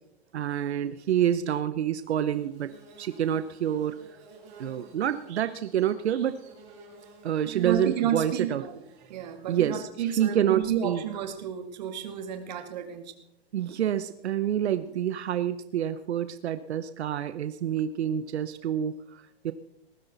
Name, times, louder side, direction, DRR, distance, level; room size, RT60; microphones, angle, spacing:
voice 1, 0.3-2.7 3.0-4.0 4.6-6.3 7.2-8.7 9.5-11.0 13.5-19.5, right 10 dB, 85° right, 12 dB, 0.9 m, -28 dB
Bird / Buzz, 1.9-9.6, right 2 dB, 20° right, 3.8 m, -53 dB
voice 2, 7.5-13.1, right 9 dB, 40° right, 6 dB, 2.2 m, -31 dB
19.5 x 14.0 x 4.0 m, 0.80 s
hypercardioid pair, 175°, 32 cm